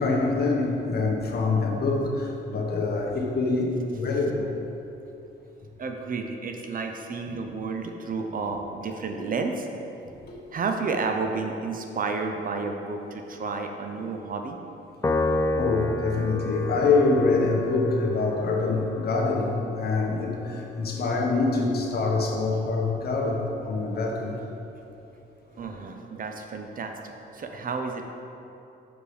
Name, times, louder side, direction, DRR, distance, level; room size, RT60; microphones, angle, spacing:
voice 1, 0.0-4.5 9.1-9.3 10.3-10.4 14.0-14.1 15.5-24.3, left 3 dB, 50° left, -1 dB, 1.2 m, -25 dB
voice 2, 5.8-9.7 10.5-14.6 25.6-27.0 27.3-28.0, right 4 dB, 45° right, 4 dB, 0.7 m, -31 dB
Piano, 15.0-21.6, left 2 dB, 15° left, 0.4 m, -31 dB
6.5 x 5.1 x 4.9 m, 2.8 s
cardioid pair, 90°, 20 cm